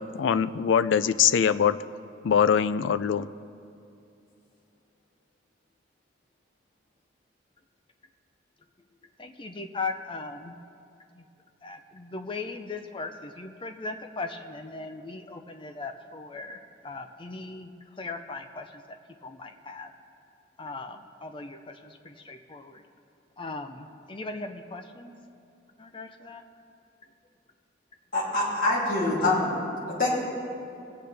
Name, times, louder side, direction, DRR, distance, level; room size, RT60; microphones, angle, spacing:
voice 1, 0.0-1.8 2.2-3.3, left 7 dB, 85° left, 14 dB, 0.4 m, -23 dB
voice 2, 9.2-10.6 11.2-11.3 11.6-17.7 18.0-18.8 19.2-19.9 20.6-22.8 23.4-25.1 25.8-26.4, left 3 dB, 25° left, 6 dB, 0.6 m, -38 dB
voice 3, 28.1-29.5 30.0-30.1, left 2 dB, 50° left, -8 dB, 2.9 m, -24 dB
24.5 x 8.7 x 3.4 m, 2.6 s
head